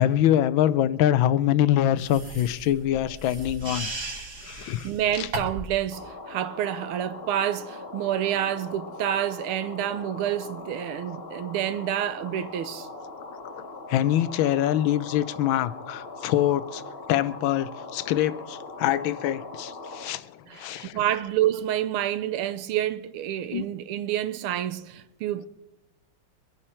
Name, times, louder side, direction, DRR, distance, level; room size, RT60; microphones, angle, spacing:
voice 1, 0.0-3.9 4.4-5.3 13.9-16.8 17.1-21.3 23.5-23.7, left 11 dB, 75° left, 1.3 m, -24 dB
sound 1, 2.0-5.8, right 2 dB, 55° right, 3.3 m, -36 dB
voice 2, 4.5-12.9 20.5-25.5, right 11 dB, 90° right, 1.7 m, -28 dB
sound 2, 5.9-20.1, left 3 dB, 35° left, 1.4 m, -41 dB
24.0 x 9.9 x 4.4 m
omnidirectional pair, 2.4 m